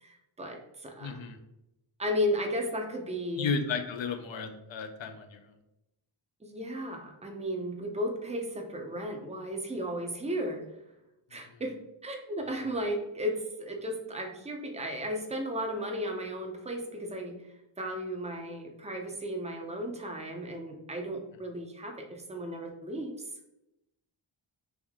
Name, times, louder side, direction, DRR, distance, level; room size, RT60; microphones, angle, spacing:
voice 1, 0.0-1.2 2.0-3.5 6.4-10.6 11.3-11.7 12.0-17.4 17.8-23.1, equal, 15° right, 3 dB, 0.6 m, -34 dB
voice 2, 1.0-1.4 3.4-5.4 12.5-12.6, left 5 dB, 65° left, 6 dB, 0.6 m, -33 dB
3.5 x 2.6 x 3.5 m, 0.89 s
wide cardioid pair, 85°, 49 cm